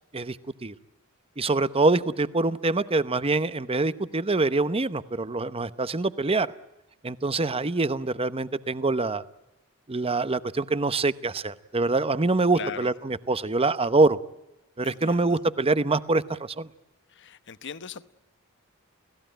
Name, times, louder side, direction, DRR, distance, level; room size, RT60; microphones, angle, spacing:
voice 1, 1.4-6.5 7.0-9.2 9.9-14.2 14.8-16.7, right 3 dB, 25° right, 14 dB, 0.9 m, -25 dB
voice 2, 12.6-12.9 14.8-15.4 17.1-18.1, left 6 dB, 60° left, 13 dB, 1.0 m, -39 dB
29.5 x 17.5 x 9.1 m, 0.95 s
head